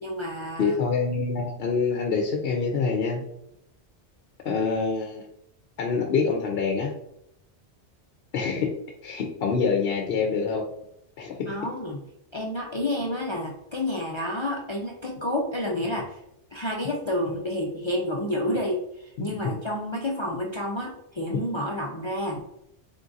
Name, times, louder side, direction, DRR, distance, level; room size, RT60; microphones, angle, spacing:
voice 1, 0.0-0.8 11.5-12.0 12.3-16.2 16.5-22.4, left 1 dB, 45° left, -1 dB, 0.4 m, -29 dB
voice 2, 0.6-3.2 4.4-5.2 5.8-6.9 8.3-8.7 9.0-10.6 11.2-11.5, left 5 dB, 65° left, 1 dB, 0.7 m, -25 dB
3.6 x 2.5 x 3.8 m, 0.79 s
omnidirectional pair, 1.1 m